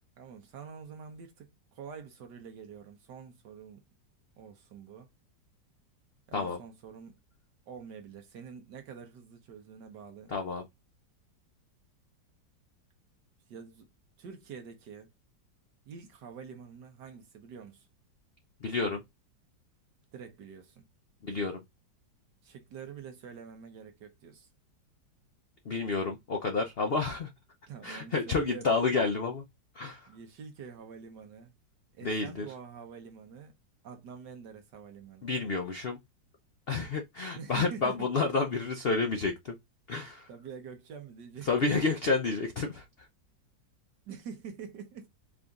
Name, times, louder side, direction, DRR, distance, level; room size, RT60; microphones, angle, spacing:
voice 1, 0.2-3.8 4.4-5.1 6.3-7.2 7.7-10.3 13.5-13.9 14.2-15.1 15.8-17.9 20.1-20.8 22.4-24.5 27.7-28.8 30.1-31.5 32.0-33.5 33.8-35.3 37.4-38.1 40.3-41.5 44.1-45.1, right 6 dB, 70° right, 1.5 m, -46 dB
voice 2, 10.3-10.6 18.6-19.0 21.2-21.6 25.7-27.3 27.8-29.5 29.7-30.1 32.0-32.5 35.2-36.0 36.7-39.6 39.9-40.3 41.4-42.9, left 4 dB, 70° left, 0.5 m, -30 dB
4.9 x 2.6 x 3.5 m
omnidirectional pair, 2.0 m